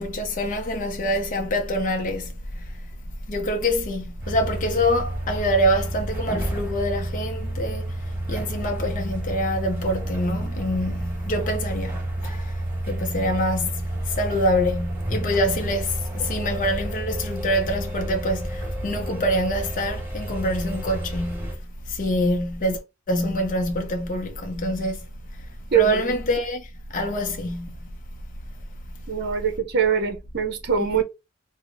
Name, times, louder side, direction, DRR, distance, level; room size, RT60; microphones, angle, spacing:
voice 1, 0.0-2.3 2.6-2.7 3.3-7.9 8.3-12.6 12.8-21.5 21.9-22.8 23.1-25.1 25.7-27.8 30.8-31.0, equal, 40° left, 0.5 m, -25 dB
sound 1, 4.2-21.5, right 1 dB, 10° right, 2.1 m, -31 dB
voice 2, 25.7-26.1 29.1-31.0, right 7 dB, 50° right, 0.7 m, -23 dB
3.8 x 2.1 x 3.2 m
head